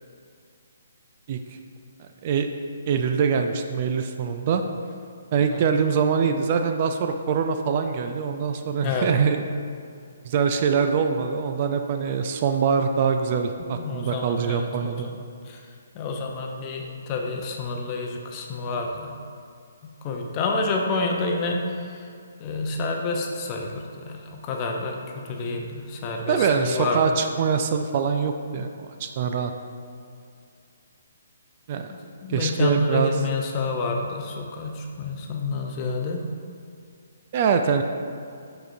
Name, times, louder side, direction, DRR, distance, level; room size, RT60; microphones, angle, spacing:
voice 1, 2.9-4.6 5.3-9.4 10.2-15.1 26.3-29.5 31.7-31.9 32.3-33.1 37.3-37.8, right 6 dB, 40° right, 6 dB, 0.3 m, -23 dB
voice 2, 13.6-15.2 15.5-15.6 15.9-19.1 19.8-22.1 22.4-25.0 25.2-27.1 31.9-36.3, left 3 dB, 30° left, 1 dB, 0.7 m, -29 dB
7.4 x 4.8 x 2.7 m, 2.4 s
figure-of-eight pair, 135°, 0 cm